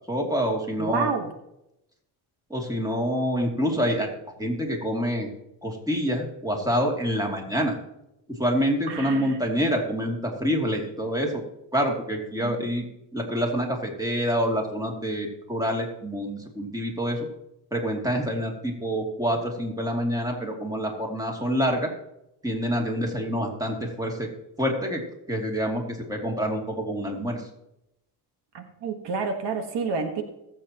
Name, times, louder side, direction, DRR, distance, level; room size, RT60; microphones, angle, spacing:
voice 1, 0.1-1.1 2.5-4.1 4.4-5.3 5.6-7.7 8.3-11.4 11.7-12.8 13.1-17.2 17.7-21.9 22.4-24.3 24.6-25.0 25.3-27.4, equal, 10° right, 1 dB, 2.7 m, -27 dB
voice 2, 0.8-1.3 8.9-9.4 12.4-12.9 28.5-30.2, right 4 dB, 75° right, 6 dB, 1.5 m, -29 dB
21.0 x 7.6 x 3.0 m, 0.85 s
cardioid pair, 100°, 41 cm